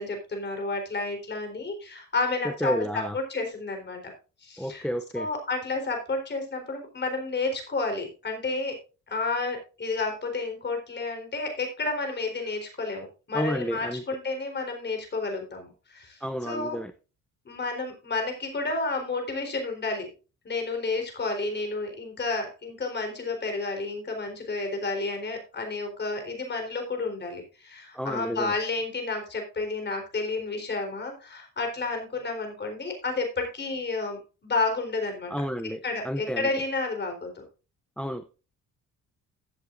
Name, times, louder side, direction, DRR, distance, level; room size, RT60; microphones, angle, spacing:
voice 1, 0.0-4.1 4.4-4.8 5.1-8.8 9.1-16.8 17.5-20.1 20.4-35.3 35.8-37.4, left 3 dB, 35° left, 4.1 m, -31 dB
voice 2, 2.6-3.2 4.6-5.3 13.3-14.0 16.2-16.9 27.9-28.5 35.3-35.8 36.0-36.5 38.0-38.3, equal, 5° left, 0.6 m, -30 dB
15.5 x 8.0 x 2.6 m
cardioid pair, 120°, 29 cm